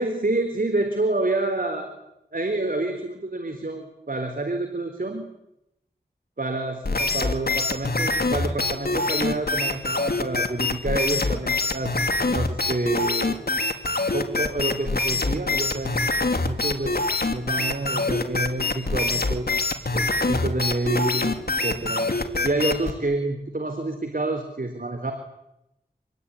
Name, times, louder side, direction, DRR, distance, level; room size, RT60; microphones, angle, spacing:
voice 1, 0.0-1.9 2.3-5.3 6.4-12.0 12.3-13.4 14.1-16.0 16.4-19.5 19.9-22.1 22.4-25.1, right 2 dB, 55° right, 6 dB, 3.9 m, -28 dB
sound 1, 6.8-22.9, left 3 dB, 65° left, 2.7 m, -25 dB
26.5 x 21.5 x 9.9 m, 0.85 s
wide cardioid pair, 45°, 17 cm